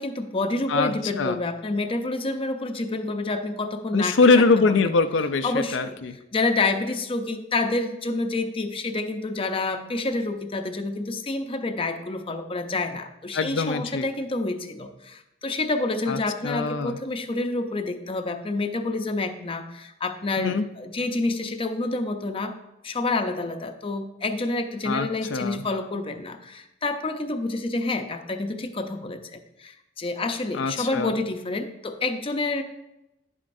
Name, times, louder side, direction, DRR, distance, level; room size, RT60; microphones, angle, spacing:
voice 1, 0.0-4.9 5.4-6.0 6.3-22.5 22.8-32.6, left 2 dB, 30° left, 6 dB, 0.6 m, -28 dB
voice 2, 0.7-1.4 3.9-6.2 13.3-14.1 16.1-17.0 20.4-20.6 24.9-25.6 30.5-31.1, left 4 dB, 90° left, 9 dB, 0.5 m, -23 dB
10.0 x 7.2 x 2.6 m, 0.91 s
head